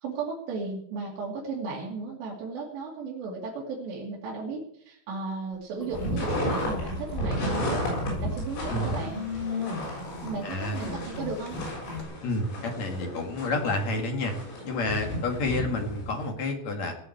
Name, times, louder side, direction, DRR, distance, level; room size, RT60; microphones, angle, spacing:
voice 1, 0.0-9.2 10.2-11.6, right 4 dB, 65° right, -4 dB, 4.6 m, -35 dB
sound 1, 5.8-7.4 7.8-12.0, left 3 dB, 10° left, 4.4 m, -36 dB
sound 2, 5.9-16.3, equal, 85° left, 9.5 m, -34 dB
voice 2, 10.4-10.8 12.2-14.3 14.6-17.0, left 2 dB, 50° left, 3 dB, 2.5 m, -29 dB
18.5 x 7.6 x 8.0 m, 0.67 s
omnidirectional pair, 5.7 m